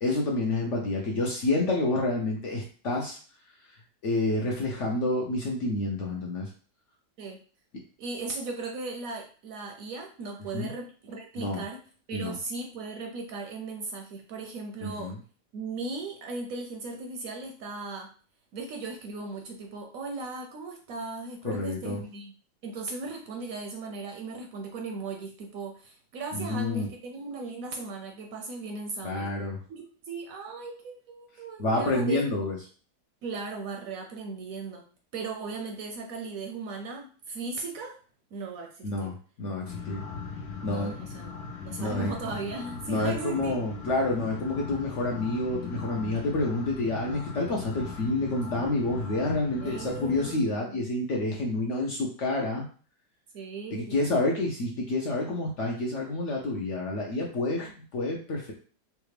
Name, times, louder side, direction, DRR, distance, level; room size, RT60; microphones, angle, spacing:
voice 1, 0.0-3.2 4.0-6.5 10.5-10.7 11.4-11.6 12.1-12.4 14.8-15.1 21.4-22.0 26.3-26.9 29.0-29.6 31.6-32.6 38.8-39.1 39.4-40.0 40.6-40.9 41.8-42.1 42.9-52.6 53.7-58.5, left 2 dB, 60° left, -1 dB, 0.8 m, -28 dB
voice 2, 8.0-11.8 12.1-15.1 15.5-18.1 18.5-22.3 22.6-29.3 29.7-32.5 33.2-34.8 35.1-38.0 38.3-39.1 40.6-43.6 49.6-50.8 53.3-54.0, right 3 dB, 70° right, 2 dB, 0.9 m, -37 dB
sound 1, 39.6-50.3, left 5 dB, 80° left, 1.1 m, -39 dB
3.3 x 2.4 x 3.2 m, 0.40 s
omnidirectional pair, 1.7 m